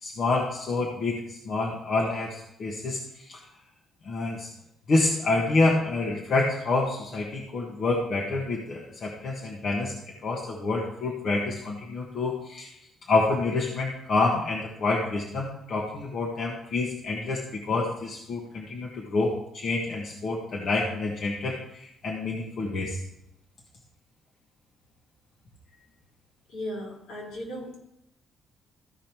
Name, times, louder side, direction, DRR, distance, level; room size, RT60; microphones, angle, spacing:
voice 1, 0.0-3.4 4.0-4.5 4.9-10.0 10.2-12.7 13.1-23.0, left 3 dB, 60° left, -1 dB, 1.5 m, -28 dB
voice 2, 26.5-27.8, equal, 90° left, -4 dB, 4.1 m, -36 dB
14.0 x 5.2 x 4.5 m, 0.79 s
cardioid pair, 90°, 0 cm